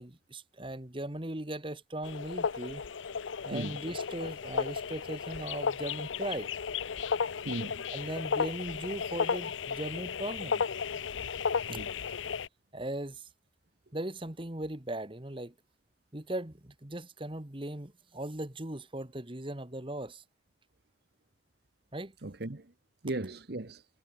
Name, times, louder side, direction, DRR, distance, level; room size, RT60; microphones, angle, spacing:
voice 1, 0.0-2.8 3.4-6.5 7.9-10.6 11.7-11.8 12.7-13.3 13.9-15.5 16.1-20.2 21.9-22.1, right 1 dB, 25° right, 1.6 m, -38 dB
sound 1, 2.0-12.5, left 6 dB, 85° left, 0.6 m, -34 dB
voice 2, 7.4-7.9 11.7-11.9 22.2-22.7 23.0-23.8, right 2 dB, 55° right, 1.1 m, -37 dB
head